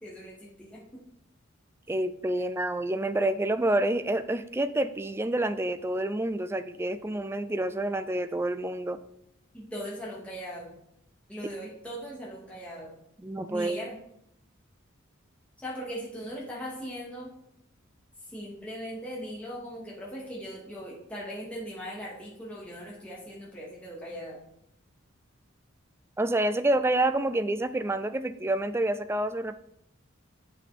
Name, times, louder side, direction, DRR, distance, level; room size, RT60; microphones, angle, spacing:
voice 1, 0.0-0.8 9.5-10.7 11.3-12.9 13.5-14.0 15.6-17.3 18.3-24.4, equal, 5° left, -6 dB, 2.5 m, -39 dB
voice 2, 1.9-9.0 13.2-13.8 26.2-29.6, right 1 dB, 10° right, 11 dB, 0.3 m, -28 dB
7.8 x 5.9 x 4.4 m, 0.74 s
head